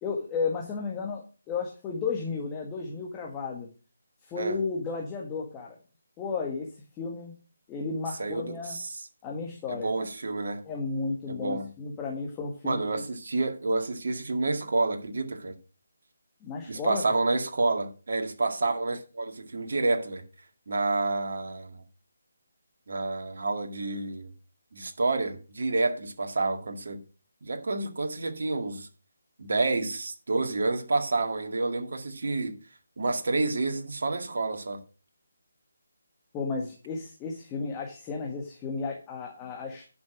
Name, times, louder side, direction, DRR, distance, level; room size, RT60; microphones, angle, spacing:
voice 1, 0.0-3.7 4.2-5.8 6.2-6.7 7.0-7.3 7.7-8.8 9.2-10.0 10.6-13.0 16.4-17.0 36.3-39.9, left 4 dB, 15° left, 1.7 m, -33 dB
voice 2, 8.2-9.1 9.7-10.7 11.3-11.7 12.6-15.5 16.7-20.2 20.7-21.8 22.9-24.3 24.7-27.0 27.4-28.9 29.4-32.6 33.0-34.8, right 3 dB, 60° right, 2.0 m, -29 dB
10.5 x 6.2 x 6.1 m
figure-of-eight pair, 150°, 0 cm